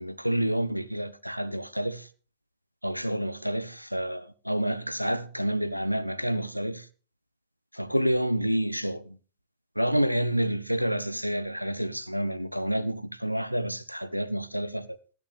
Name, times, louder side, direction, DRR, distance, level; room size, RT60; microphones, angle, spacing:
voice 1, 0.0-2.1 2.8-6.9 7.7-9.2 9.8-15.0, equal, 90° right, 0.5 m, -29 dB
18.5 x 8.8 x 3.2 m
figure-of-eight pair, 90°, 0 cm